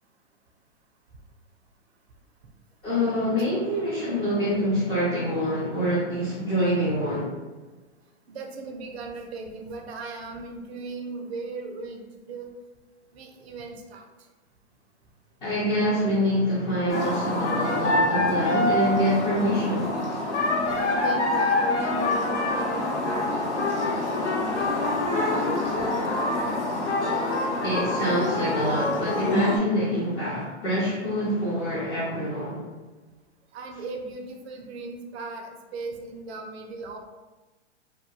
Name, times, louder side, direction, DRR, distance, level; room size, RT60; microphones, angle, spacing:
voice 1, 2.8-7.3 15.4-19.9 25.1-25.5 27.6-32.6, equal, 15° left, -10 dB, 0.3 m, -25 dB
voice 2, 8.3-12.5 13.1-14.0 20.7-24.8 25.2-26.3 33.5-37.0, right 3 dB, 65° right, 3 dB, 0.6 m, -38 dB
sound 1, 16.9-29.6, left 2 dB, 75° left, 0.8 m, -26 dB
2.9 x 2.2 x 2.3 m, 1.2 s
hypercardioid pair, 120°, 35 cm